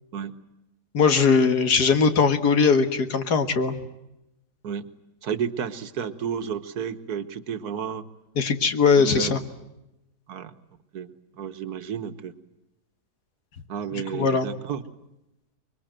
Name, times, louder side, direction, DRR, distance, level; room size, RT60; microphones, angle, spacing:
voice 1, 0.9-3.7 8.4-9.4 14.1-14.5, left 5 dB, 75° left, 8 dB, 2.2 m, -20 dB
voice 2, 5.2-8.0 9.0-9.4 10.3-10.5 10.9-11.1 11.4-12.3 13.7-14.8, right 7 dB, 70° right, 11 dB, 1.7 m, -31 dB
25.0 x 22.5 x 9.0 m, 0.91 s
omnidirectional pair, 1.7 m